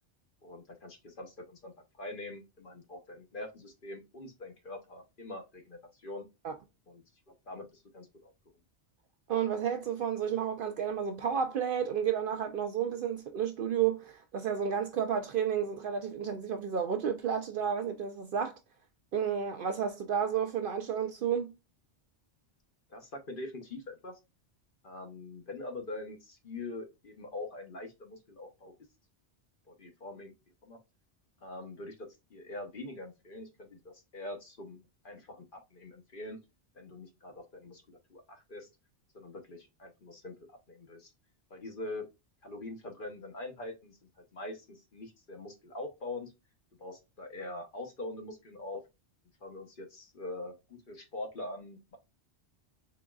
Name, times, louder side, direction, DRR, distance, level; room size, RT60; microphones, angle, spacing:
voice 1, 0.4-6.3 6.9-8.3 22.9-24.2 24.8-28.7 29.7-30.3 30.6-30.8 31.4-36.4 36.7-38.7 39.1-41.1 41.5-42.1 42.4-46.3 46.8-48.8 49.4-52.0, left 2 dB, 50° left, 1.0 m, -44 dB
voice 2, 9.3-18.6 19.1-21.5, right 8 dB, 60° right, 0.6 m, -31 dB
3.8 x 3.6 x 2.3 m
omnidirectional pair, 1.2 m